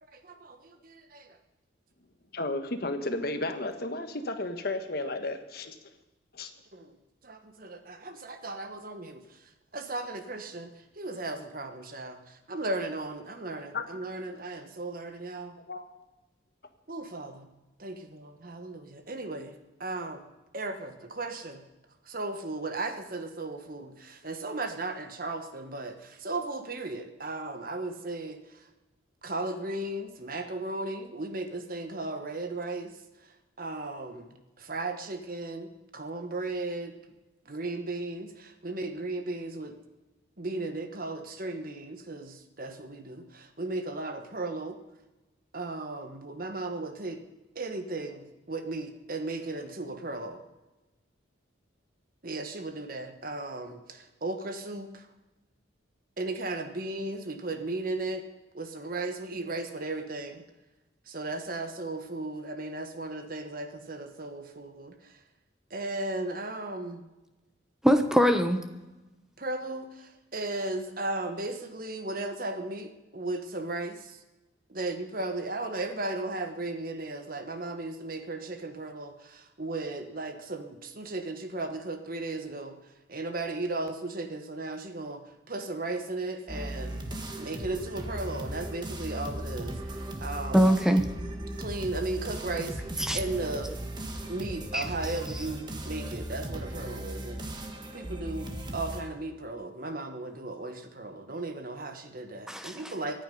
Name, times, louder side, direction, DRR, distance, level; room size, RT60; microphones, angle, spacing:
voice 1, 0.0-1.4 6.7-6.9 7.2-9.4 9.7-15.6 16.9-17.5 17.8-20.2 20.5-21.6 22.0-28.7 29.2-36.9 37.5-39.8 40.4-44.8 45.5-47.2 47.5-50.4 52.2-55.1 56.2-58.2 58.5-60.4 61.1-65.2 65.7-67.1 69.4-74.2 74.7-82.8 83.1-87.0 87.3-89.8 90.2-90.7 91.6-92.8 93.1-93.7 94.3-103.2, right 2 dB, 45° right, 8 dB, 1.3 m, -36 dB
voice 2, 2.3-5.8 6.3-6.5 13.7-13.8 15.6-15.9, left 2 dB, 55° left, 7 dB, 1.3 m, -33 dB
voice 3, 67.8-68.6 90.5-91.1 93.0-93.2 94.7-94.8 102.5-102.8, equal, 5° right, 7 dB, 1.0 m, -22 dB
sound 1, 86.5-99.0, right 1 dB, 25° right, 1.6 m, -37 dB
24.0 x 9.0 x 5.4 m, 1.1 s
head